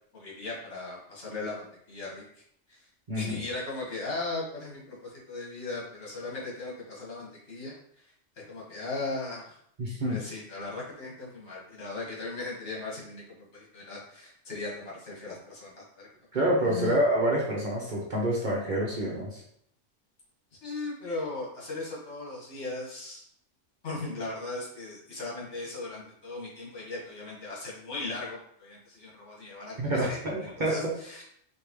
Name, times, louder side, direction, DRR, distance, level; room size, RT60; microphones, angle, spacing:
voice 1, 0.1-2.4 2.7-2.9 3.1-8.1 8.5-9.6 10.0-16.1 16.6-17.0 20.6-23.2 23.8-30.2 30.6-31.2, left 3 dB, 60° left, -5 dB, 1.8 m, -38 dB
voice 2, 3.1-3.4 9.8-10.2 16.3-19.4 29.8-30.9, right 1 dB, 40° right, -4 dB, 0.9 m, -27 dB
5.1 x 2.9 x 3.1 m, 0.68 s
omnidirectional pair, 1.3 m